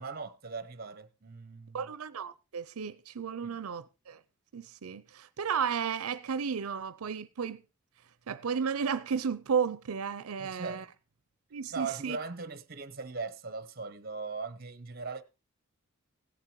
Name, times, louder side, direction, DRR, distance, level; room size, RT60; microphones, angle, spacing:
voice 1, 0.0-1.9 3.4-3.6 10.4-10.9 11.7-15.2, right 4 dB, 45° right, 0.9 m, -39 dB
voice 2, 1.7-4.2 4.5-7.6 8.3-10.8 11.5-12.2, right 6 dB, 85° right, 0.6 m, -33 dB
16.5 x 7.5 x 4.6 m
head